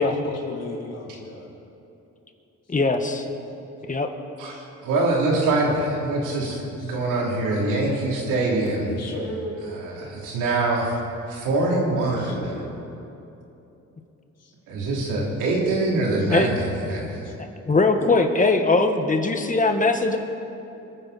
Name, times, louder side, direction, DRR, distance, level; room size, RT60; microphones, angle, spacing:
voice 1, 0.0-1.5 6.8-7.0 8.8-9.7 12.0-12.8 14.4-14.5 16.2-16.3 16.9-17.3 18.0-18.1, left 2 dB, 55° left, -2 dB, 3.5 m, -35 dB
voice 2, 2.7-3.2 3.9-4.1 16.3-16.5 17.6-20.2, left 3 dB, 25° left, 5 dB, 1.5 m, -20 dB
voice 3, 4.8-8.9 9.8-10.9 11.3-12.5 14.7-17.2, right 2 dB, 90° right, -2 dB, 3.2 m, -24 dB
27.5 x 9.9 x 4.2 m, 2.9 s
cardioid pair, 90°, 30 cm